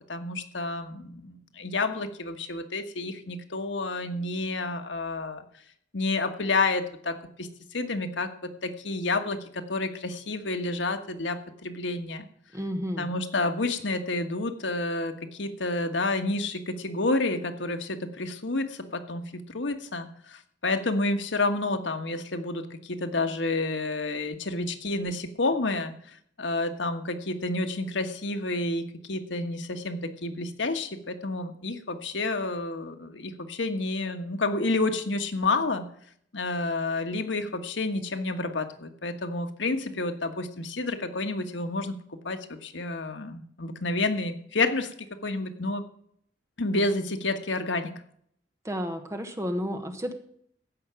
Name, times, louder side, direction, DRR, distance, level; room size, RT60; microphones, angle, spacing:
voice 1, 0.1-5.4 5.9-8.3 8.6-12.2 13.0-35.8 36.3-42.0 42.2-44.9 45.2-45.8 46.6-47.9, left 2 dB, 80° left, 7 dB, 1.4 m, -29 dB
voice 2, 12.5-13.1 48.6-50.1, equal, 15° right, 6 dB, 1.3 m, -31 dB
15.0 x 5.8 x 7.6 m, 0.65 s
head